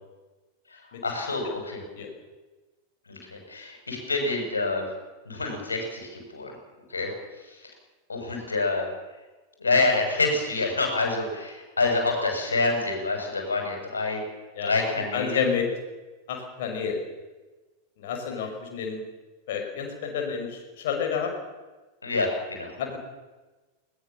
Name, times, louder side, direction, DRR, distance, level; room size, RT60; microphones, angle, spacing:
voice 1, 0.7-1.8 3.1-4.9 5.3-6.6 6.9-7.1 7.4-7.7 8.1-8.9 9.6-14.2 14.6-15.4 22.0-22.7, left 3 dB, 75° left, 3 dB, 6.9 m, -27 dB
voice 2, 15.1-15.7 16.3-17.0 18.0-19.0 19.5-21.3 22.8-23.0, left 7 dB, 55° left, 3 dB, 5.9 m, -29 dB
21.0 x 20.0 x 7.3 m, 1.2 s
figure-of-eight pair, 90°, 0 cm